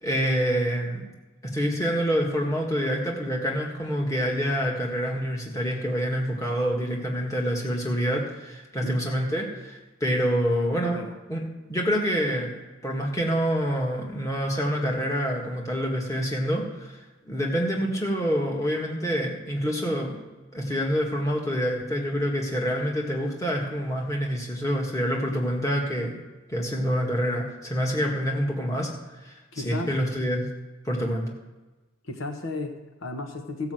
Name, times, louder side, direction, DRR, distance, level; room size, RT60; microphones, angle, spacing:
voice 1, 0.0-1.0 1.4-11.0 11.3-11.4 11.7-12.5 12.8-17.0 17.3-20.2 20.5-26.1 26.5-28.9 29.2-29.3 29.6-30.5 30.9-31.3, equal, 15° left, -1 dB, 1.8 m, -26 dB
voice 2, 8.8-9.1 10.8-11.1 29.5-29.9 32.0-33.7, left 2 dB, 65° left, 4 dB, 1.1 m, -34 dB
14.5 x 5.7 x 7.8 m, 1.2 s
head